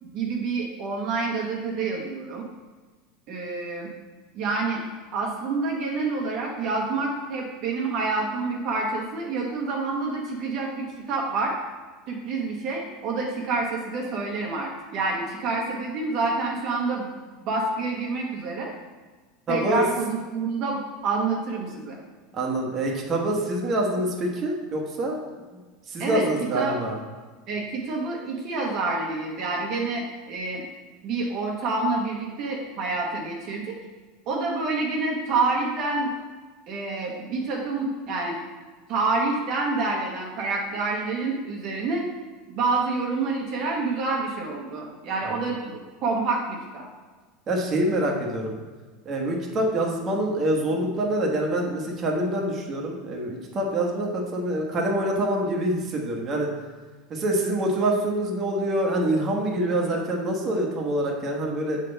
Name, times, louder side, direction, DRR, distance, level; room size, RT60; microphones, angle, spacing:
voice 1, 0.0-2.4 3.3-3.9 4.3-4.8 5.1-11.6 12.1-18.7 19.5-22.0 26.0-26.2 26.5-26.8 27.5-30.6 31.0-33.8 34.3-36.1 36.7-38.4 38.9-42.0 42.5-46.8, right 3 dB, 50° right, -1 dB, 1.1 m, -28 dB
voice 2, 19.5-19.8 22.3-25.2 25.9-27.0 47.5-48.5 49.0-56.5 57.1-61.8, right 1 dB, 35° right, 0 dB, 1.2 m, -25 dB
7.3 x 3.9 x 4.0 m, 1.4 s
supercardioid pair, 125°, 0 cm